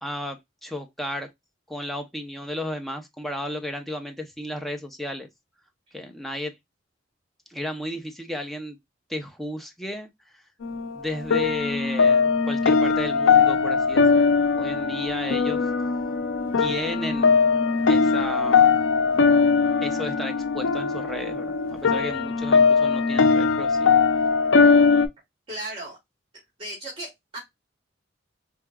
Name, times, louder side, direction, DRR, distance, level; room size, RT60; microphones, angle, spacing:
voice 1, 0.0-1.3 1.7-5.3 5.9-6.5 7.5-8.8 9.1-10.4 10.9-15.7 16.6-17.3 17.9-18.7 19.8-23.9, left 1 dB, ahead, 0.6 m, -33 dB
sound 1, 10.6-25.1, left 5 dB, 90° left, 0.5 m, -20 dB
voice 2, 25.5-26.0 26.6-27.4, right 1 dB, 30° right, 2.2 m, -36 dB
4.6 x 2.8 x 2.2 m
head